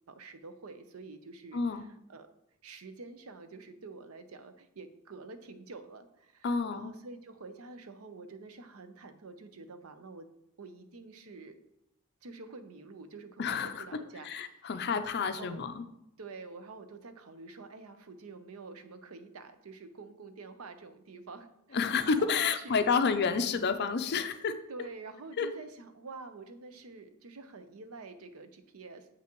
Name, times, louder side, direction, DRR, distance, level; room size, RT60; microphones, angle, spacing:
voice 1, 0.1-2.3 2.6-10.3 10.6-11.6 12.2-15.6 16.2-23.0 24.2-24.3 24.7-29.1, right 3 dB, 80° right, 9 dB, 0.7 m, -48 dB
voice 2, 1.5-1.8 6.4-6.9 13.4-13.8 14.2-15.8 21.7-24.6 25.4-25.5, left 5 dB, 50° left, 9 dB, 0.5 m, -29 dB
7.6 x 5.9 x 3.0 m, 0.80 s
head